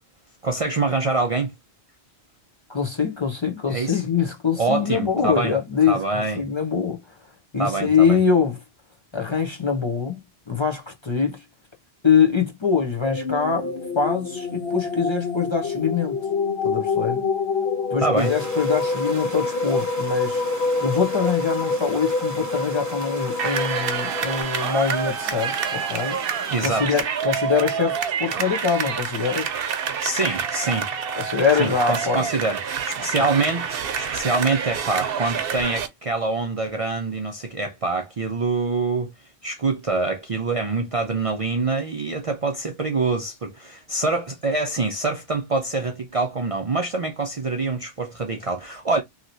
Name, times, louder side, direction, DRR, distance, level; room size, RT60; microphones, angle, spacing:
voice 1, 0.4-1.5 3.7-4.0 4.6-5.6 5.9-6.5 7.6-8.2 18.0-18.3 26.5-26.9 30.0-30.9 31.6-39.1 39.4-49.0, right 3 dB, 45° right, 0.5 m, -25 dB
voice 2, 2.7-7.0 7.5-8.6 9.1-10.2 10.5-11.4 12.0-16.2 16.6-17.2 17.9-26.1 26.6-29.5 31.1-32.3 33.2-33.3, left 6 dB, 30° left, 0.6 m, -23 dB
sound 1, 13.0-24.4, left 4 dB, 70° left, 1.1 m, -26 dB
sound 2, 18.2-26.8, right 1 dB, 20° right, 0.9 m, -38 dB
sound 3, 23.4-35.9, right 7 dB, 65° right, 0.8 m, -27 dB
2.9 x 2.8 x 2.6 m
omnidirectional pair, 1.1 m